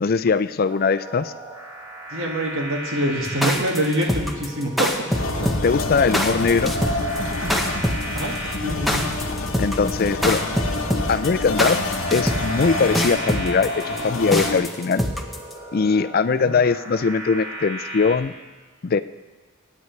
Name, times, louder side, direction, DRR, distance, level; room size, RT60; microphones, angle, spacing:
voice 1, 0.0-1.3 5.6-6.7 9.6-10.4 11.1-11.8 12.1-15.0 15.7-18.3 18.8-19.0, left 5 dB, 45° left, 12 dB, 0.4 m, -21 dB
sound 1, 0.7-18.2, right 1 dB, 20° right, 1.8 m, -37 dB
voice 2, 2.1-4.9 5.4-5.5 8.1-8.3 8.6-9.1 16.4-16.5, equal, 70° right, 0 dB, 2.1 m, -25 dB
sound 2, 3.2-15.5, equal, ahead, 0.9 m, -24 dB
sound 3, 5.1-14.6, left 2 dB, 70° left, 1.1 m, -27 dB
24.5 x 9.4 x 3.3 m, 1.4 s
head